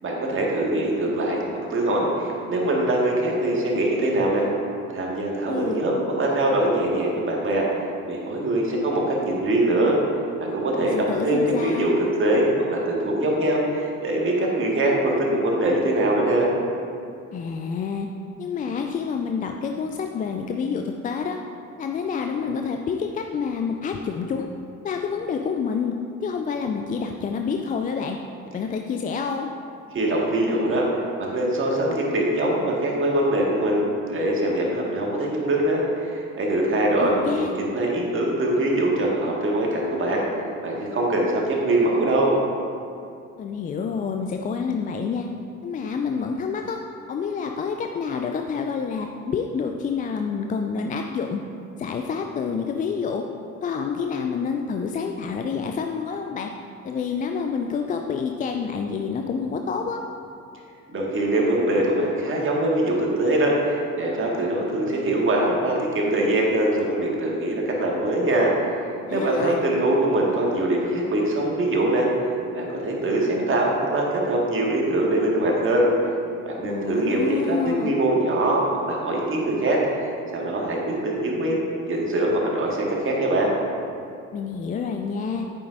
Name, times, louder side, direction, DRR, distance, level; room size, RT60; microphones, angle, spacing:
voice 1, 0.0-1.4 1.7-4.5 4.9-7.6 8.1-9.9 10.4-16.5 29.9-33.8 34.1-40.2 40.6-42.4 60.9-68.5 69.1-72.1 72.5-75.9 76.4-78.6 78.9-81.6 81.9-83.5, right 1 dB, 30° right, -2 dB, 1.9 m, -23 dB
voice 2, 5.5-5.8 10.8-11.9 17.3-18.1 18.4-21.4 21.8-24.5 24.8-25.9 26.2-28.2 28.5-29.5 37.0-37.5 43.4-45.3 45.6-46.8 47.1-51.4 51.8-53.2 53.6-56.5 56.8-60.0 69.1-69.6 76.6-78.0 84.3-85.4, left 6 dB, 20° left, 4 dB, 0.4 m, -28 dB
9.8 x 9.3 x 2.7 m, 2.5 s
figure-of-eight pair, 50°, 39 cm